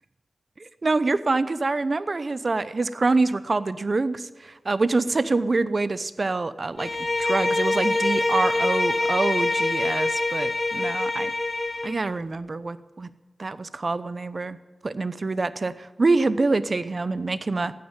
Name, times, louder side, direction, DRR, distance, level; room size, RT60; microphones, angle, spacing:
voice 1, 0.6-6.9 7.2-11.3 11.8-13.1 13.4-14.6 14.8-17.7, right 3 dB, 50° right, 15 dB, 0.8 m, -25 dB
Bowed string instrument, 6.8-12.0, left 2 dB, 50° left, 2.3 m, -25 dB
15.5 x 9.8 x 9.0 m, 1.2 s
cardioid pair, 55°, 0 cm